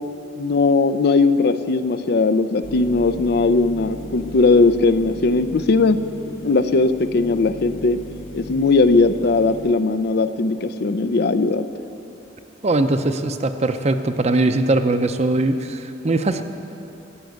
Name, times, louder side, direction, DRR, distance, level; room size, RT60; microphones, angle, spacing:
voice 1, 0.4-6.0 6.4-8.0 8.3-11.7, left 3 dB, 60° left, 12 dB, 0.5 m, -18 dB
sound 1, 2.6-9.7, left 2 dB, 80° left, 0.9 m, -37 dB
voice 2, 12.6-16.4, right 2 dB, 35° right, 8 dB, 0.6 m, -20 dB
14.5 x 7.4 x 9.2 m, 3.0 s
head